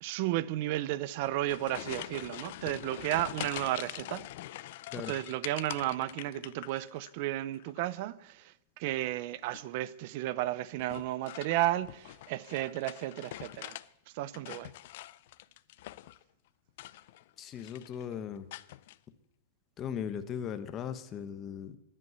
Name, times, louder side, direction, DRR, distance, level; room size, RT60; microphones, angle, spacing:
voice 1, 0.0-4.3 4.9-13.8 14.1-14.7, right 15 dB, 40° right, 0.6 m, -33 dB
sound 1, 1.1-7.1 7.4-8.0 9.4-9.8 10.8-13.9 14.2-16.2 16.7-17.3 17.6-18.0 18.5-19.0, left 15 dB, 50° left, 0.5 m, -44 dB
voice 2, 17.4-18.5 19.8-21.8, left 8 dB, 20° left, 0.9 m, -38 dB
15.0 x 11.0 x 8.0 m
supercardioid pair, 170°, 0 cm